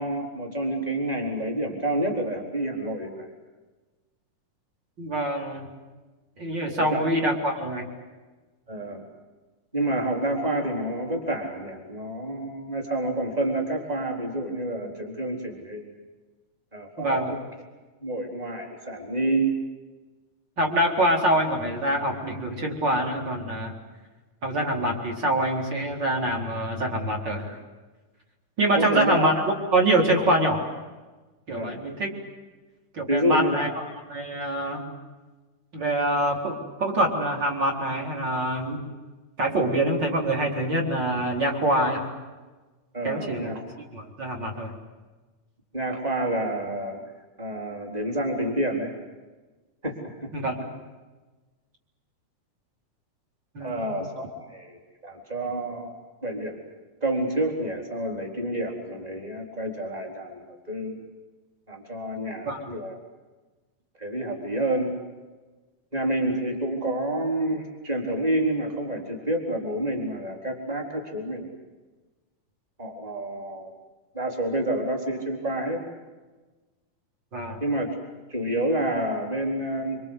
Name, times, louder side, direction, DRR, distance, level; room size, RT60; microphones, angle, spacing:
voice 1, 0.0-3.3 6.4-6.5 6.8-7.1 8.7-9.0 9.7-16.0 16.7-17.2 18.0-19.5 28.7-29.3 31.5-31.8 33.1-33.7 42.9-43.6 45.7-47.0 47.4-48.9 49.8-50.3 53.6-55.9 56.2-56.6 57.0-61.0 61.7-63.0 64.0-64.9 65.9-71.5 72.8-73.7 74.1-75.8 77.6-77.9 78.3-80.0, right 1 dB, 10° right, 1 dB, 4.0 m, -28 dB
voice 2, 5.0-5.7 6.4-7.9 17.0-17.3 20.6-23.8 24.4-27.6 28.6-30.7 31.5-32.1 32.9-34.8 35.7-38.8 39.4-42.1 43.0-43.5 43.8-44.7 50.3-50.6 53.5-53.9 62.4-62.6 77.3-77.6, right 1 dB, 30° right, 1 dB, 4.5 m, -25 dB
26.5 x 26.0 x 8.1 m, 1.2 s
omnidirectional pair, 4.1 m